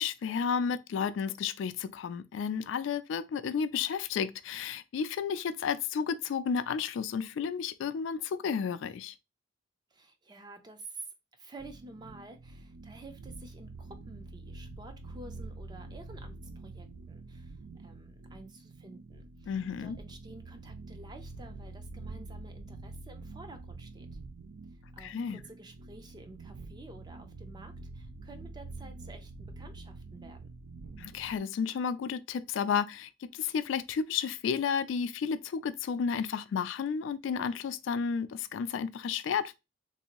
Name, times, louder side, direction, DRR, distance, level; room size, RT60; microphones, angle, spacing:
voice 1, 0.0-9.1 19.5-20.0 25.0-25.4 31.0-39.6, left 6 dB, 70° left, 0.3 m, -32 dB
voice 2, 9.9-24.1 24.9-30.4, right 2 dB, 20° right, 0.5 m, -51 dB
sound 1, 11.6-31.4, right 3 dB, 80° right, 0.4 m, -46 dB
3.2 x 2.7 x 2.9 m
head